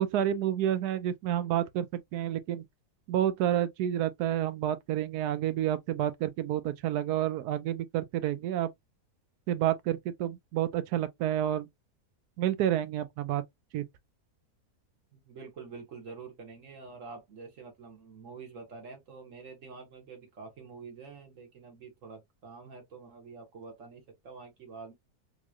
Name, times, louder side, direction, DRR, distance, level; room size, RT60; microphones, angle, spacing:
voice 1, 0.0-2.6 3.1-8.7 9.5-11.7 12.4-13.4 13.7-13.8, right 11 dB, 80° right, 1.1 m, -29 dB
voice 2, 15.1-24.9, right 4 dB, 55° right, 1.7 m, -47 dB
3.8 x 3.0 x 2.4 m
omnidirectional pair, 1.7 m